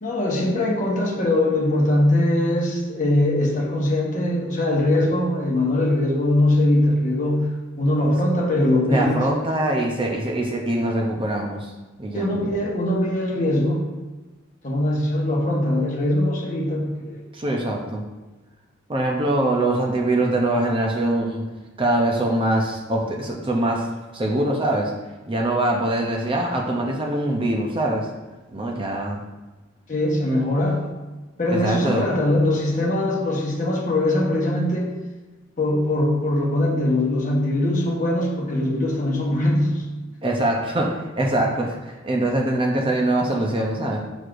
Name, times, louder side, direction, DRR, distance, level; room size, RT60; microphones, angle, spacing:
voice 1, 0.0-7.5 7.8-9.2 12.1-13.8 14.6-17.2 29.9-30.8 31.4-34.9 35.6-39.8, left 1 dB, 40° left, -1 dB, 1.1 m, -21 dB
voice 2, 8.9-11.7 12.0-12.3 17.3-18.0 18.9-21.4 21.8-23.9 24.1-24.9 25.3-28.1 28.5-29.2 31.5-32.1 40.2-44.0, right 1 dB, 25° right, 0 dB, 0.6 m, -23 dB
6.5 x 6.1 x 2.5 m, 1.2 s
head